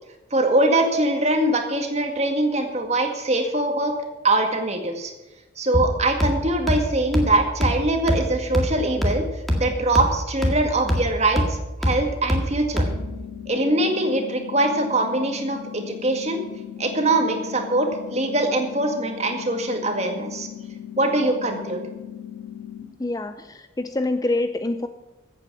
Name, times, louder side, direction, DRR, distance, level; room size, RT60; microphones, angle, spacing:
voice 1, 0.3-3.9 4.2-5.1 5.6-9.2 9.5-12.9 13.5-16.4 16.8-20.5 21.0-21.8, right 2 dB, 30° right, 4 dB, 2.0 m, -22 dB
sound 1, 5.7-13.2, equal, ahead, 1.9 m, -26 dB
sound 2, 12.8-22.8, left 10 dB, 60° left, 3.3 m, -38 dB
voice 2, 23.0-24.9, left 2 dB, 20° left, 9 dB, 0.4 m, -26 dB
15.0 x 8.7 x 6.2 m, 1.1 s
head